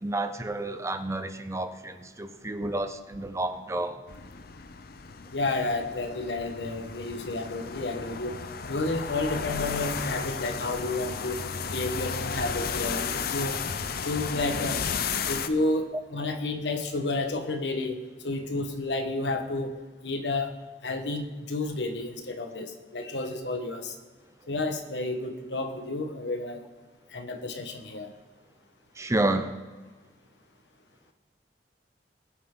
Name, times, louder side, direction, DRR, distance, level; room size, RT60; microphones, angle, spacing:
voice 1, 0.0-4.0 29.0-29.6, right 2 dB, 15° right, 0.6 m, -30 dB
sound 1, 4.1-15.5, left 6 dB, 60° left, 0.7 m, -33 dB
voice 2, 5.3-8.3 8.7-11.4 11.7-13.6 14.0-14.8 15.3-18.0 18.2-19.7 20.0-20.5 20.8-23.9 24.5-26.6 27.1-28.1, left 2 dB, 85° left, 1.4 m, -31 dB
20.5 x 8.7 x 3.9 m
head